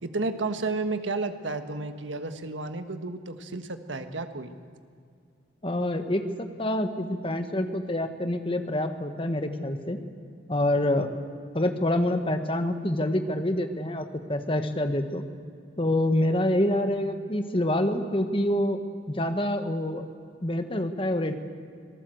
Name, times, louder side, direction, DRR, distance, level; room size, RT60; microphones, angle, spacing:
voice 1, 0.0-4.5, right 3 dB, 85° right, 8 dB, 1.6 m, -32 dB
voice 2, 5.6-10.0 10.5-11.1 11.5-15.2 15.8-18.8 19.1-20.0 20.4-21.3, left 1 dB, 30° left, 7 dB, 1.4 m, -26 dB
25.0 x 19.0 x 7.9 m, 2.3 s
head